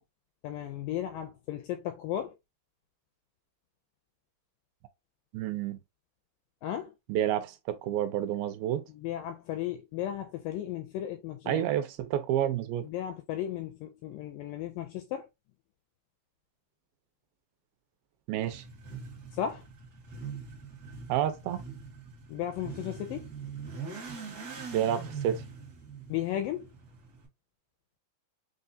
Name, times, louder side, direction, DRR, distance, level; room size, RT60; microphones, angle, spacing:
voice 1, 0.4-2.4 6.6-6.9 8.9-11.6 12.8-15.3 19.3-19.6 22.3-23.3 26.1-26.7, left 11 dB, 85° left, 1.9 m, -35 dB
voice 2, 5.3-5.8 7.1-8.8 11.5-12.9 18.3-18.6 21.1-21.6 24.7-25.4, right 11 dB, 80° right, 2.4 m, -29 dB
Motorcycle / Accelerating revving vroom, 18.4-27.3, right 5 dB, 55° right, 1.0 m, -43 dB
6.0 x 2.3 x 2.6 m
omnidirectional pair, 4.3 m